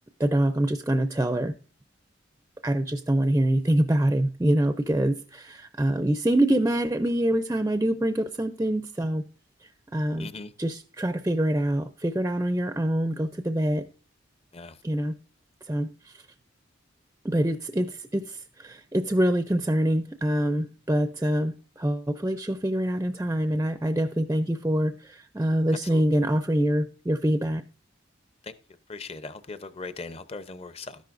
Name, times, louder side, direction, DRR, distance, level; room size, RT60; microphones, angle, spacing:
voice 1, 0.2-1.5 2.6-9.2 9.6-10.3 10.6-13.8 14.8-15.1 15.7-16.2 17.2-27.6, right 1 dB, 15° right, 0.4 m, -25 dB
voice 2, 10.2-10.5 14.5-14.8 25.9-26.0 28.9-31.0, left 3 dB, 30° left, 0.7 m, -39 dB
13.0 x 10.5 x 2.5 m
head